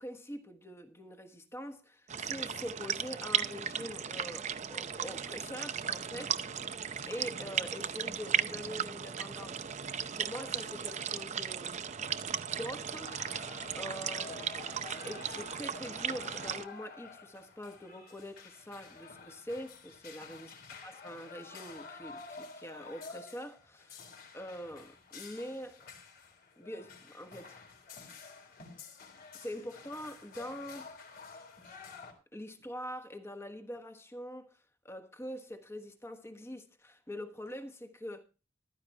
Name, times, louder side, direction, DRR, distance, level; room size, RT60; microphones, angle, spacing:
voice 1, 0.0-6.4 7.0-11.9 12.5-13.4 13.8-14.4 15.0-20.5 20.8-24.1 24.3-25.9 26.6-27.6 29.3-31.0 32.3-34.6 34.8-38.2, equal, 15° left, 1.3 m, -44 dB
sound 1, 2.1-16.7, right 7 dB, 40° right, 0.6 m, -36 dB
sound 2, 13.0-32.1, left 5 dB, 55° left, 3.9 m, -50 dB
14.5 x 13.5 x 2.8 m
head